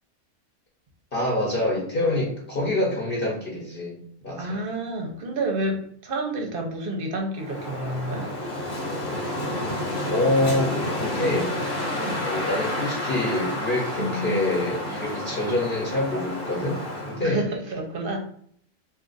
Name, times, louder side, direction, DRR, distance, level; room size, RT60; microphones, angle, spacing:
voice 1, 1.1-4.0 4.2-4.6 10.1-11.6 12.2-17.4, left 1 dB, 50° left, -4 dB, 1.0 m, -26 dB
voice 2, 4.4-8.3 12.0-12.3 14.0-14.7 17.2-18.2, right 1 dB, 55° right, 2 dB, 0.8 m, -29 dB
Wind, 7.4-17.3, left 1 dB, 80° left, 1.4 m, -30 dB
2.6 x 2.4 x 3.8 m, 0.63 s
omnidirectional pair, 1.3 m